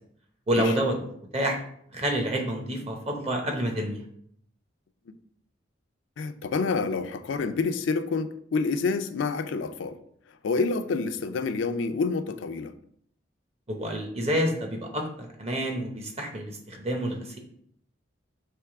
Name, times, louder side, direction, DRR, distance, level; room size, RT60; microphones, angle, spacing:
voice 1, 0.5-1.0 1.3-1.6 1.9-4.0 13.7-17.4, right 1 dB, 35° right, 2 dB, 0.8 m, -28 dB
voice 2, 6.2-10.0 10.3-12.7, left 4 dB, 85° left, 9 dB, 0.4 m, -28 dB
3.5 x 3.1 x 4.7 m, 0.66 s
head